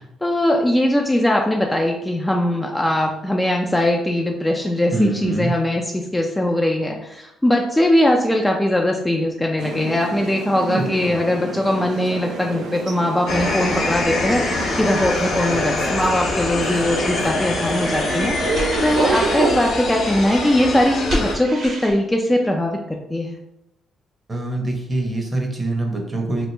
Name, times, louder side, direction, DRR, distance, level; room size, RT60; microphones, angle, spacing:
voice 1, 0.2-18.4 18.8-23.4, left 1 dB, 10° left, 1 dB, 0.4 m, -20 dB
voice 2, 4.9-5.5 10.6-11.2 24.3-26.5, right 2 dB, 25° right, 1 dB, 0.8 m, -24 dB
sound 1, 9.6-19.6, right 4 dB, 75° right, 0.5 m, -29 dB
sound 2, 13.3-21.4, left 2 dB, 60° left, 0.7 m, -24 dB
sound 3, 16.8-17.2 18.5-19.5 21.1-22.0, equal, 55° right, 1.2 m, -29 dB
3.0 x 2.5 x 3.2 m, 0.85 s
cardioid pair, 90°, 0 cm